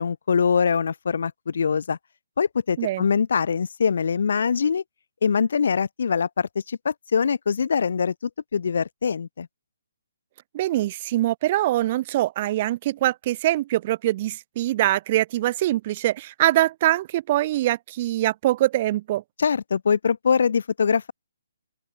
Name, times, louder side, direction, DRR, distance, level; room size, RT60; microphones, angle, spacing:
voice 1, 0.0-2.0 2.4-4.8 5.2-9.5 19.4-21.1, left 6 dB, 65° left, 0.8 m, -23 dB
voice 2, 10.5-19.2, right 15 dB, 40° right, 0.5 m, -23 dB
open air
figure-of-eight pair, 140°, 0 cm